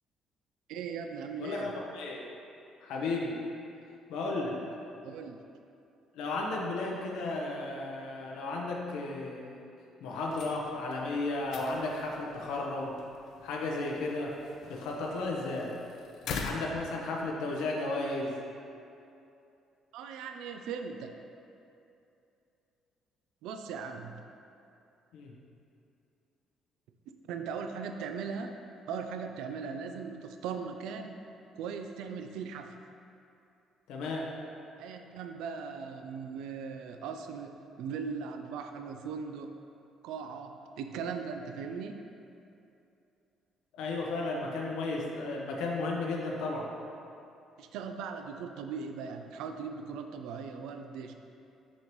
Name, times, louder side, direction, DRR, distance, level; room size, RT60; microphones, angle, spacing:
voice 1, 0.7-1.7 5.0-5.4 19.9-21.1 23.4-24.2 27.3-31.2 31.5-32.8 34.8-39.5 40.0-42.0 47.6-51.2, right 6 dB, 85° right, 6 dB, 0.4 m, -39 dB
voice 2, 1.4-2.2 2.8-3.4 4.1-4.6 6.1-9.6 10.0-13.0 13.4-14.3 14.7-15.7 16.4-18.3 25.1-25.3 33.9-34.3 43.7-46.7, left 2 dB, 90° left, -2 dB, 0.8 m, -34 dB
sound 1, 10.2-17.7, left 4 dB, 65° left, 0.5 m, -44 dB
6.3 x 5.4 x 3.0 m, 2.7 s
cardioid pair, 150°, 0 cm